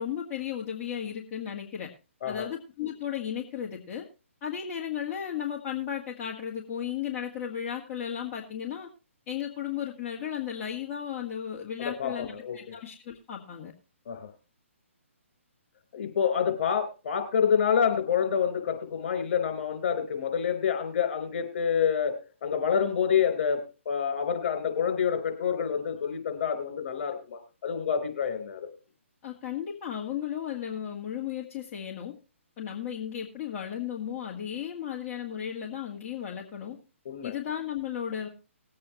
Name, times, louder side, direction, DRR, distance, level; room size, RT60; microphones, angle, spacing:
voice 1, 0.0-1.9 2.2-4.0 4.4-8.9 9.3-13.7 29.2-32.1 32.6-36.8 37.2-38.3, left 9 dB, 25° left, -3 dB, 1.7 m, -35 dB
voice 2, 11.8-12.7 14.1-14.3 15.9-28.7 37.1-37.3, left 7 dB, 50° left, 7 dB, 4.0 m, -28 dB
20.0 x 8.5 x 3.0 m, 0.31 s
hypercardioid pair, 150°, 7 cm